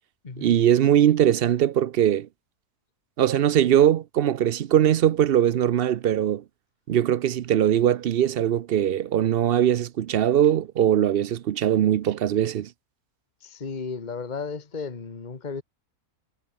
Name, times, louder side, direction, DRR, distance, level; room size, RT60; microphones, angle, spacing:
voice 1, 0.4-2.3 3.2-6.4 6.9-12.7, right 10 dB, 65° right, 0.5 m, -21 dB
voice 2, 13.4-15.6, left 5 dB, 30° left, 1.7 m, -34 dB
omnidirectional pair, 1.6 m